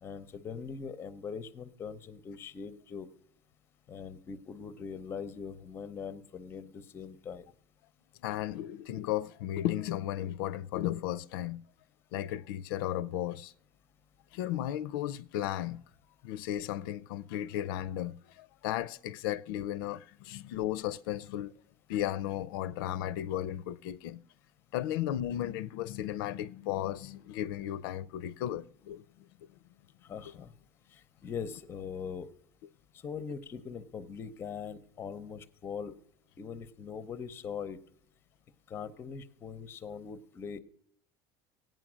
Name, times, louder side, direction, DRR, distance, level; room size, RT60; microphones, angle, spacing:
voice 1, 0.0-3.1 3.9-7.5 30.0-30.5 30.9-32.3 32.9-35.9 36.4-37.8 38.7-40.6, left 6 dB, 20° left, 0.6 m, -41 dB
voice 2, 8.2-11.6 12.1-13.5 14.3-15.8 16.2-21.5 21.9-24.2 24.7-29.1, left 12 dB, 85° left, 0.5 m, -35 dB
16.5 x 9.1 x 6.1 m
cardioid pair, 170°, 11 cm